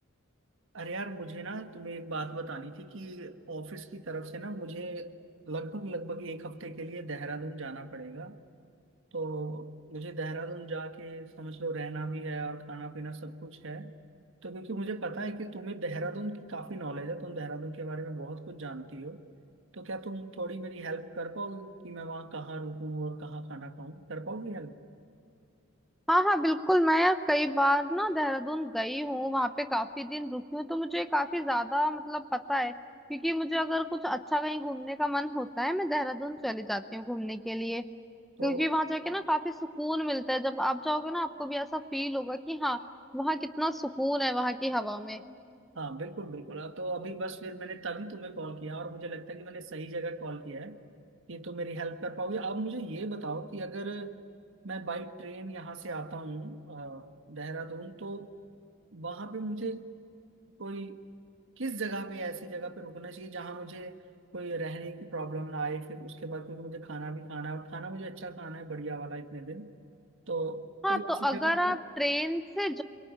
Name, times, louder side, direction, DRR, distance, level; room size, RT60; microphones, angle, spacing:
voice 1, 0.7-5.1 5.5-8.4 9.1-14.0 14.4-19.2 19.7-24.7 38.4-38.7 45.7-50.8 51.3-54.2 54.6-58.3 58.9-59.9 60.6-61.0 61.6-64.0 64.3-69.7 70.3-71.8, right 2 dB, 65° right, 8 dB, 1.5 m, -38 dB
voice 2, 26.1-32.7 33.1-37.9 38.4-42.8 43.1-45.2 70.8-72.8, equal, ahead, 9 dB, 0.7 m, -29 dB
27.0 x 23.5 x 9.4 m, 2.5 s
head